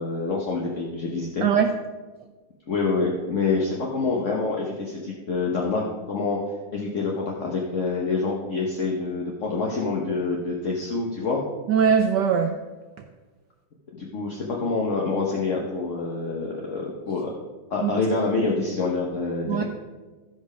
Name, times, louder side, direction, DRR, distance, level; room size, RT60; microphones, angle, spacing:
voice 1, 0.0-1.4 2.7-6.4 6.7-11.4 13.9-17.3 17.7-19.6, left 3 dB, 45° left, -2 dB, 1.2 m, -26 dB
voice 2, 1.4-1.7 11.7-12.6 17.8-18.0 19.5-19.6, right 7 dB, 75° right, 5 dB, 1.0 m, -21 dB
15.0 x 5.3 x 5.0 m, 1.3 s
omnidirectional pair, 2.4 m